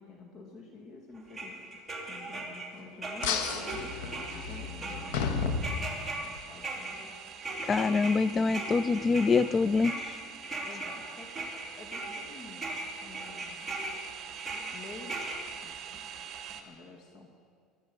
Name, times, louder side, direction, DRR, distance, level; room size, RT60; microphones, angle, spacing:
voice 1, 0.0-1.8 2.1-7.4 10.6-11.5 11.7-12.7 13.0-13.7 14.7-15.2 15.6-16.1 16.7-17.3, left 3 dB, 40° left, 1 dB, 1.8 m, -49 dB
sound 1, 1.3-2.7 3.0-12.3 12.6-15.4, right 2 dB, ahead, 2.8 m, -38 dB
sound 2, 3.2-6.4, left 5 dB, 80° left, 1.4 m, -33 dB
sound 3, 3.4-16.6, right 8 dB, 40° right, 1.8 m, -46 dB
voice 2, 7.7-10.2, left 4 dB, 25° left, 19 dB, 0.4 m, -25 dB
20.5 x 13.5 x 5.3 m, 2.1 s
supercardioid pair, 135°, 0 cm